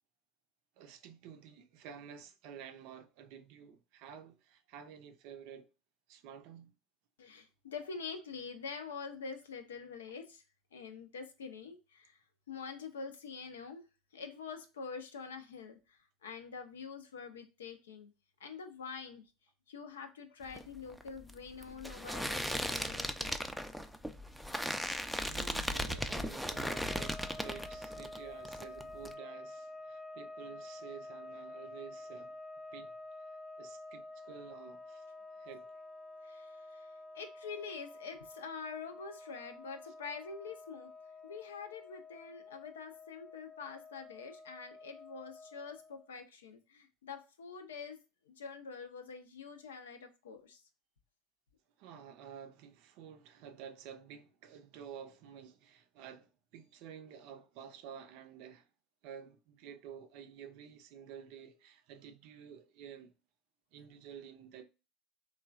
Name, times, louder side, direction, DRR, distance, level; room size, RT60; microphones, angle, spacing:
voice 1, 0.8-5.7 6.1-6.7 25.2-32.3 32.7-33.0 33.6-35.1 35.4-35.7 51.8-58.7 59.0-63.1 63.7-64.6, right 8 dB, 65° right, 0.4 m, -51 dB
voice 2, 7.2-10.4 10.7-12.2 12.5-13.8 14.1-18.1 18.4-19.2 19.7-23.8 36.2-36.9 37.1-40.9 41.2-48.0 48.3-50.6, left 5 dB, 90° left, 0.5 m, -46 dB
sound 1, 20.4-28.2 28.4-29.1, equal, ahead, 0.3 m, -37 dB
sound 2, 26.4-46.1, left 2 dB, 35° left, 0.6 m, -49 dB
3.0 x 2.2 x 2.4 m
hypercardioid pair, 80°, 0 cm